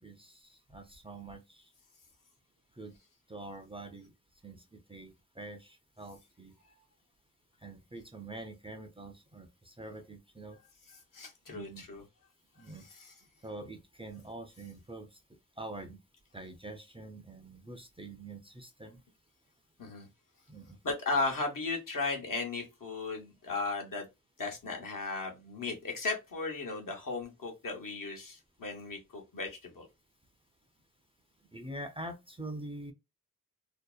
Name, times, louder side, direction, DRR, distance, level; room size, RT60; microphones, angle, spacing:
voice 1, 0.0-1.7 2.8-2.9 3.3-4.1 4.4-6.5 7.6-10.6 11.5-11.8 12.6-12.8 13.4-15.2 15.6-16.0 16.3-19.0 20.5-20.8 31.5-32.9, right 2 dB, 15° right, 0.4 m, -45 dB
voice 2, 11.1-12.0 12.9-13.1 19.8-20.1 20.8-24.1 24.4-29.9, left 3 dB, 75° left, 0.9 m, -36 dB
2.7 x 2.0 x 2.3 m
wide cardioid pair, 80°, 33 cm